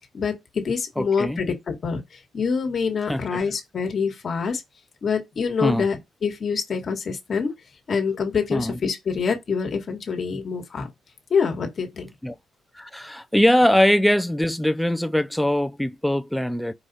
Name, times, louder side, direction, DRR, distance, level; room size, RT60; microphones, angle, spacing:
voice 1, 0.1-2.0 2.3-4.6 5.0-6.0 6.2-7.5 7.9-10.9 11.3-12.1, left 5 dB, 50° left, 1.4 m, -25 dB
voice 2, 1.0-1.4 3.1-3.4 5.6-5.9 8.5-8.8 12.2-12.4 12.7-16.7, left 1 dB, 5° left, 0.4 m, -22 dB
4.9 x 2.4 x 4.0 m
cardioid pair, 90°, 0 cm